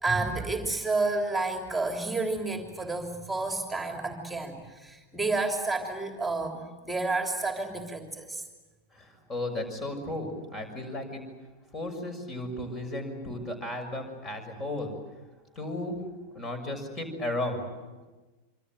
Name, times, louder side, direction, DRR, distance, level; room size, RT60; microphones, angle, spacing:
voice 1, 0.0-8.4, right 3 dB, 5° right, 3 dB, 3.3 m, -30 dB
voice 2, 8.9-11.2 11.7-14.9 15.5-16.0 16.3-17.6, left 1 dB, 25° left, 7 dB, 6.6 m, -34 dB
26.5 x 26.0 x 7.7 m, 1.2 s
figure-of-eight pair, 90°, 0 cm